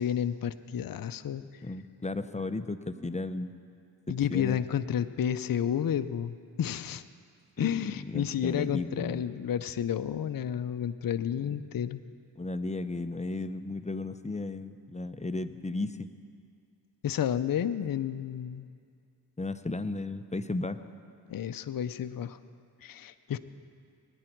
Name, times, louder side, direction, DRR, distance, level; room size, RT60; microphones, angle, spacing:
voice 1, 0.0-1.4 4.1-7.0 7.6-12.0 17.0-18.7 21.3-22.4 22.8-23.4, left 9 dB, 55° left, 11 dB, 0.6 m, -31 dB
voice 2, 1.6-3.5 4.1-4.6 7.6-9.3 11.4-11.8 12.4-16.1 19.4-20.8, left 2 dB, 15° left, 11 dB, 0.7 m, -35 dB
21.5 x 10.0 x 4.6 m, 2.3 s
cardioid pair, 45°, 42 cm